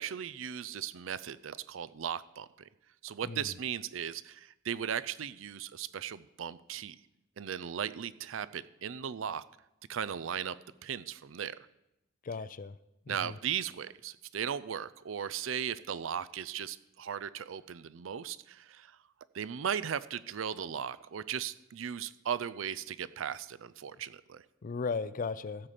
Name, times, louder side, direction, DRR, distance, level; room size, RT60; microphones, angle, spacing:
voice 1, 0.0-2.7 3.0-7.0 7.4-9.4 9.9-10.5 10.8-11.6 13.1-18.9 19.3-24.4, right 8 dB, 75° right, 16 dB, 0.5 m, -37 dB
voice 2, 12.3-12.7 13.1-13.4 24.6-25.7, left 4 dB, 45° left, 16 dB, 0.4 m, -36 dB
15.0 x 7.5 x 5.1 m, 0.89 s
head